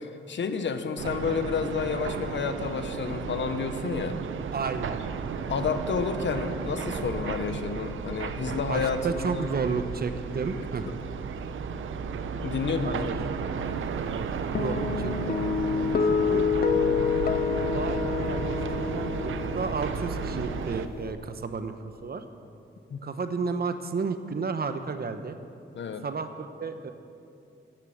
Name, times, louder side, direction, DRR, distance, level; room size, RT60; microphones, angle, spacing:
voice 1, 0.0-4.2 5.5-9.5 12.4-13.1 13.6-13.8 22.9-23.0 25.7-26.0, left 5 dB, 65° left, 9 dB, 1.1 m, -30 dB
sound 1, 1.0-20.9, right 6 dB, 80° right, 0.7 m, -33 dB
voice 2, 4.5-5.0 8.6-10.8 12.8-15.4 16.1-17.0 17.6-21.7 22.0-22.2 23.0-25.4 26.0-26.9, right 5 dB, 50° right, 9 dB, 1.0 m, -33 dB
Guitar, 14.6-21.1, left 6 dB, 50° left, 0.8 m, -28 dB
15.0 x 10.5 x 6.5 m, 2.6 s
cardioid pair, 90°, 20 cm